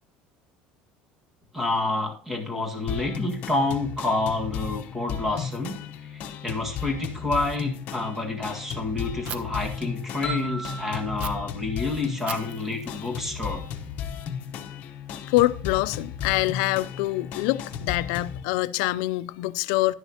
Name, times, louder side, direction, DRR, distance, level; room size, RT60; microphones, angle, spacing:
voice 1, 1.5-13.6, left 2 dB, 10° right, 1.7 m, -29 dB
sound 1, 2.9-18.4, left 8 dB, 50° left, 1.0 m, -35 dB
Fire, 9.3-9.4 11.2-11.3 12.3-14.2, right 8 dB, 40° right, 0.7 m, -40 dB
sound 2, 10.2-12.9, left 1 dB, 30° left, 3.2 m, -35 dB
voice 2, 15.3-19.9, left 18 dB, 80° left, 0.4 m, -25 dB
11.0 x 10.0 x 2.9 m
cardioid pair, 155°, 3 cm